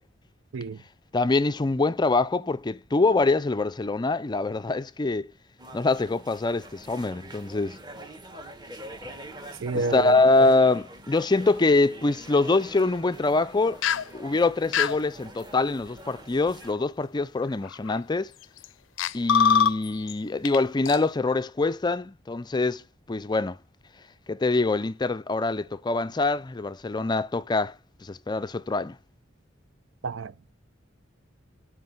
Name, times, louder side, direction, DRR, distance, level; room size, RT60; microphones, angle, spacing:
voice 1, 1.1-5.3 5.7-7.8 9.9-13.8 14.1-18.3 19.1-22.8 23.1-23.6 24.3-27.8 28.0-29.0, left 3 dB, 20° left, 0.4 m, -24 dB
sound 1, 5.6-16.7, right 1 dB, 20° right, 1.6 m, -45 dB
voice 2, 9.6-10.5 30.0-30.5, right 3 dB, 75° right, 0.6 m, -31 dB
sound 2, 13.8-14.1 14.7-15.0 16.7-16.8 17.7-18.0 18.6-18.7 19.0-20.1 20.4-20.6 20.9-21.0, left 7 dB, 75° left, 0.5 m, -23 dB
9.3 x 5.1 x 7.9 m
head